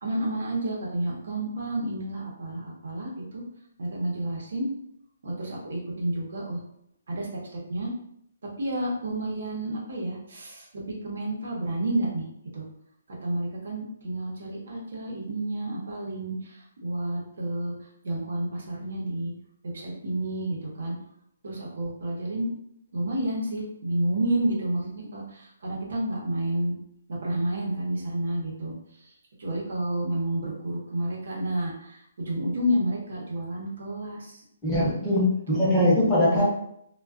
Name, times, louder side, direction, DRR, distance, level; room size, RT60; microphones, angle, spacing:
voice 1, 0.0-3.4 3.8-4.7 5.2-6.6 7.1-7.9 8.6-12.3 12.5-12.7 13.1-19.3 19.6-20.9 21.4-22.5 22.9-26.8 27.1-29.1 29.4-34.4 35.2-35.7 36.3-36.4, right 1 dB, 70° right, -3 dB, 0.8 m, -30 dB
voice 2, 34.6-36.4, left 1 dB, 10° left, -8 dB, 0.8 m, -22 dB
2.3 x 2.2 x 2.4 m, 0.73 s
hypercardioid pair, 160°, 0 cm